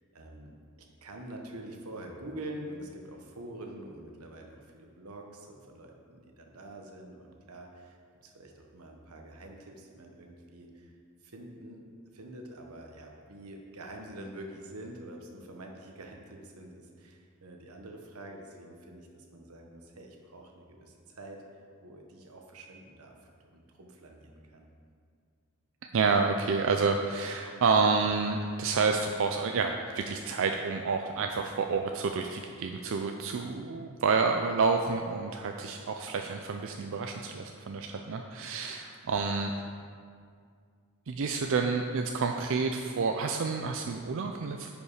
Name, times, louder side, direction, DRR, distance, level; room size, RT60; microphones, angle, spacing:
voice 1, 0.1-0.5 1.0-10.9 11.2-21.4 21.8-23.1 23.4-24.7, right 1 dB, 85° right, 2 dB, 1.2 m, -46 dB
voice 2, 25.9-39.5 41.1-44.7, right 4 dB, 65° right, 4 dB, 0.5 m, -29 dB
10.5 x 5.3 x 4.9 m, 2.2 s
head